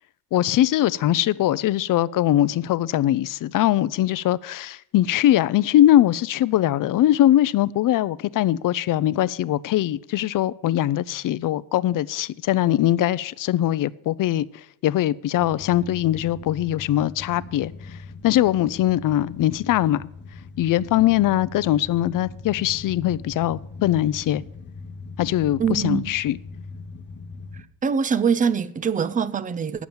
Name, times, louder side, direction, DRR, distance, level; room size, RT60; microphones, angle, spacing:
voice 1, 0.3-18.0 18.2-20.1 20.6-24.4 25.2-26.4, left 13 dB, 45° left, 0.5 m, -21 dB
sound 1, 15.3-27.6, left 4 dB, 25° left, 0.9 m, -40 dB
voice 2, 25.6-26.1 27.8-29.9, right 6 dB, 20° right, 0.4 m, -23 dB
9.3 x 7.1 x 8.8 m
cardioid pair, 120°, 45 cm